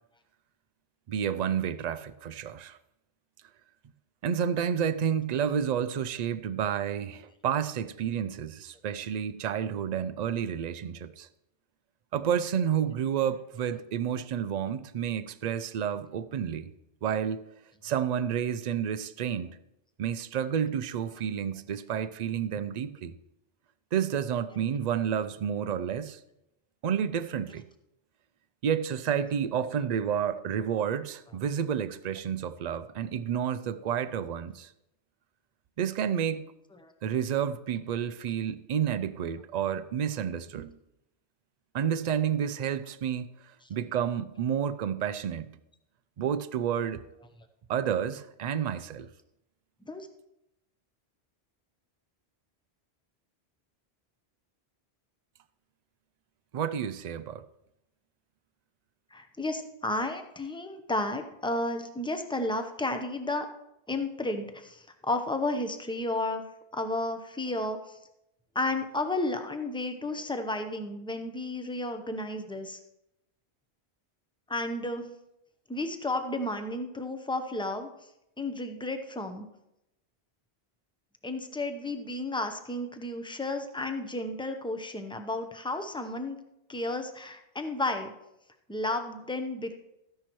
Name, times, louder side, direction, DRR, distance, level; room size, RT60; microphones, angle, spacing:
voice 1, 1.1-2.8 4.2-11.3 12.1-16.7 17.0-17.4 17.8-19.6 20.0-23.1 23.9-26.2 26.8-27.6 28.6-34.7 35.8-36.5 37.0-40.8 41.7-45.5 46.2-47.0 47.7-49.1 56.5-57.4, right 8 dB, 55° right, 0.5 m, -30 dB
voice 2, 59.1-63.5 63.9-66.4 66.7-68.0 68.5-72.8 74.5-75.1 75.7-77.9 78.4-79.5 81.2-86.4 86.7-88.1 88.7-89.7, left 2 dB, 5° left, 0.6 m, -32 dB
13.5 x 10.0 x 3.1 m
omnidirectional pair, 1.1 m